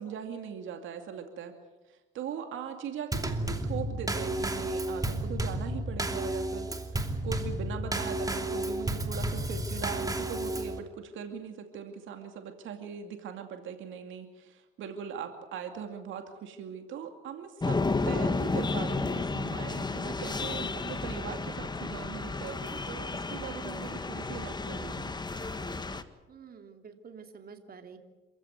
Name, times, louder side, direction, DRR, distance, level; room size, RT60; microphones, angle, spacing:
voice 1, 0.0-1.6 1.9-25.1, right 7 dB, 80° right, 6 dB, 2.4 m, -40 dB
Drum kit / Snare drum / Bass drum, 3.1-10.8, right 1 dB, 20° right, 2.8 m, -32 dB
sound 1, 17.6-26.0, left 3 dB, 20° left, 1.6 m, -32 dB
voice 2, 26.3-28.0, right 6 dB, 50° right, 5 dB, 3.0 m, -49 dB
27.0 x 15.5 x 9.3 m, 1.1 s
cardioid pair, 90°, 20 cm